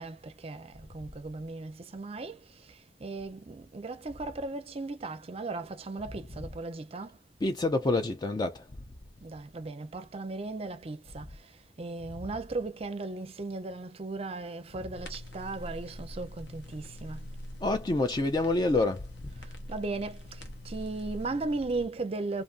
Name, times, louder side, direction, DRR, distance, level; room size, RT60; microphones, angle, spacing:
voice 1, 0.0-7.2 9.2-17.3 19.4-22.4, right 3 dB, 35° right, 0.5 m, -37 dB
voice 2, 7.4-8.7 17.6-19.1, left 2 dB, 25° left, 0.3 m, -27 dB
sound 1, 14.9-21.9, left 1 dB, 65° left, 0.9 m, -44 dB
2.5 x 2.5 x 2.4 m
head